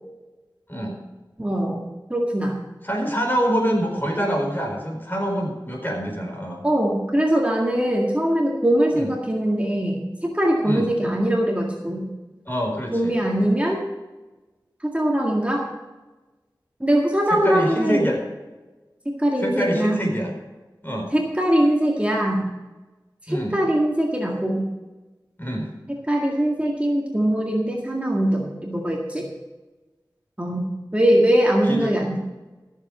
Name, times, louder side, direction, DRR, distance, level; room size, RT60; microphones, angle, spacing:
voice 1, 1.4-2.6 6.6-12.1 12.9-13.8 14.8-15.7 16.8-18.1 19.1-20.0 21.1-22.4 23.3-24.6 25.9-29.3 30.4-30.6 30.9-32.2, right 1 dB, 15° right, -1 dB, 2.0 m, -22 dB
voice 2, 2.8-6.6 9.0-9.1 10.6-10.9 12.5-13.2 17.3-18.2 19.4-20.3 20.8-21.1 23.3-23.6 25.4-25.7 31.6-31.9, equal, 25° left, 1 dB, 4.4 m, -25 dB
14.0 x 7.3 x 6.3 m, 1.2 s
wide cardioid pair, 50°, 8 cm